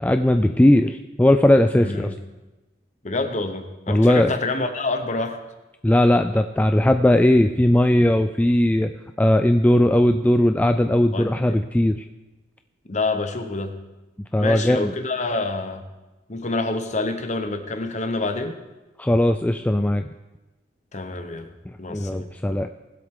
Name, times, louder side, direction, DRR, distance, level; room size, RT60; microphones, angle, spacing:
voice 1, 0.0-2.1 3.9-4.3 5.8-8.9 9.2-12.0 14.3-14.9 19.0-20.0 21.9-22.7, left 1 dB, 10° left, 7 dB, 0.3 m, -18 dB
voice 2, 1.7-2.1 3.0-5.4 11.1-11.6 12.9-13.8 14.4-15.8 16.3-18.6 20.9-21.5 21.8-22.3, left 3 dB, 40° left, 7 dB, 1.1 m, -27 dB
19.5 x 7.9 x 3.8 m, 1.1 s
head